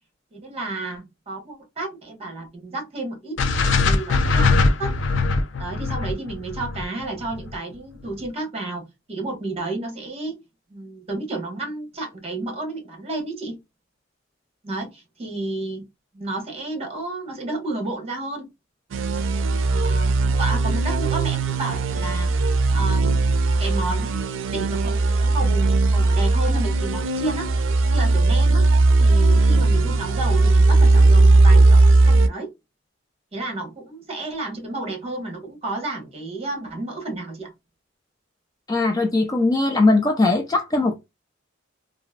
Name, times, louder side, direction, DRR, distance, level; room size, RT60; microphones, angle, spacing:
voice 1, 0.3-4.9 5.6-10.4 10.7-13.6 14.6-15.8 16.1-18.5 19.7-23.2 23.6-27.5 27.9-28.7 29.0-32.5 33.3-37.5, right 2 dB, 30° right, 1.3 m, -31 dB
sound 1, 3.4-7.6, left 3 dB, 75° left, 0.5 m, -21 dB
sound 2, 18.9-32.3, right 2 dB, 85° right, 0.4 m, -18 dB
voice 2, 38.7-41.0, left 2 dB, 20° left, 0.4 m, -20 dB
2.9 x 2.5 x 2.4 m
head